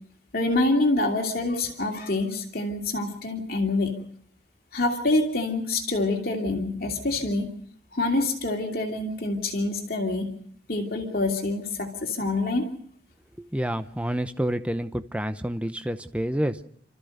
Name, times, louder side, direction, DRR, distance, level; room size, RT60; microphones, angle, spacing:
voice 1, 0.3-3.9 4.7-7.5 7.9-10.3 10.7-12.7, left 2 dB, 50° left, 2 dB, 2.8 m, -26 dB
voice 2, 13.4-16.6, equal, 5° right, 9 dB, 0.7 m, -28 dB
29.5 x 14.0 x 6.6 m, 0.64 s
head